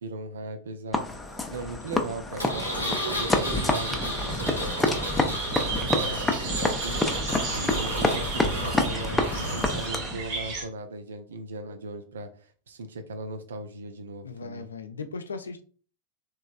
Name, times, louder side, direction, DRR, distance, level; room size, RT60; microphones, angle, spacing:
voice 1, 0.0-14.7, right 2 dB, 65° right, 0.5 m, -38 dB
sound 1, 0.9-10.2, left 2 dB, 10° left, 0.5 m, -28 dB
Engine, 2.4-9.9, equal, 85° right, 1.0 m, -34 dB
sound 2, 3.2-10.6, right 4 dB, 45° right, 0.9 m, -34 dB
voice 2, 14.2-15.6, left 4 dB, 70° left, 0.4 m, -37 dB
3.5 x 3.0 x 2.3 m
figure-of-eight pair, 90°, 0 cm